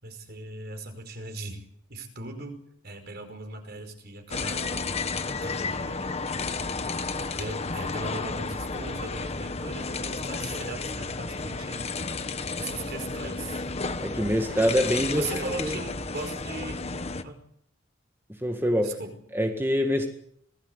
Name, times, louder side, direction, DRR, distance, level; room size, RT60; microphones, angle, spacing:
voice 1, 0.0-1.6 1.9-4.9 5.4-6.4 7.3-11.9 12.6-13.6 15.1-16.8 17.2-17.5 18.8-19.2, right 2 dB, 55° right, 6 dB, 5.2 m, -39 dB
sound 1, 4.3-17.2, left 3 dB, 35° left, 1.2 m, -32 dB
voice 2, 14.0-15.8 18.4-19.0 19.3-20.1, equal, 10° right, 3 dB, 2.0 m, -25 dB
26.0 x 18.0 x 8.2 m, 0.72 s
head